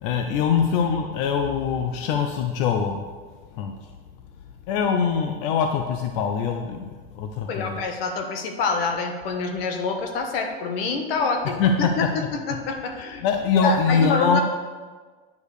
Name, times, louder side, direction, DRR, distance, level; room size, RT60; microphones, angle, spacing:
voice 1, 0.0-3.0 3.6-3.7 4.7-6.9 7.1-7.8 11.6-11.7 13.2-14.4, left 6 dB, 65° left, 4 dB, 0.9 m, -23 dB
voice 2, 7.5-13.3 13.6-14.4, left 4 dB, 85° left, 4 dB, 1.5 m, -27 dB
9.5 x 5.1 x 6.6 m, 1.4 s
supercardioid pair, 135°, 29 cm